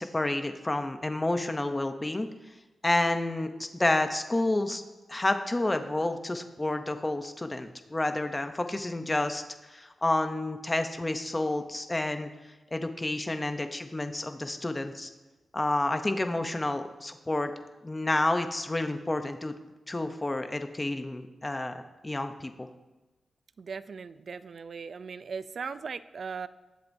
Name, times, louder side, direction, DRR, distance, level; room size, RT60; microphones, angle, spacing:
voice 1, 0.0-2.3 2.8-4.8 5.1-12.3 12.7-15.1 15.5-17.5 17.8-19.5 19.9-22.7, left 2 dB, 15° left, 7 dB, 0.7 m, -30 dB
voice 2, 23.6-26.5, right 5 dB, 55° right, 14 dB, 0.4 m, -38 dB
19.5 x 7.6 x 2.7 m, 1.1 s
wide cardioid pair, 155°, 0 cm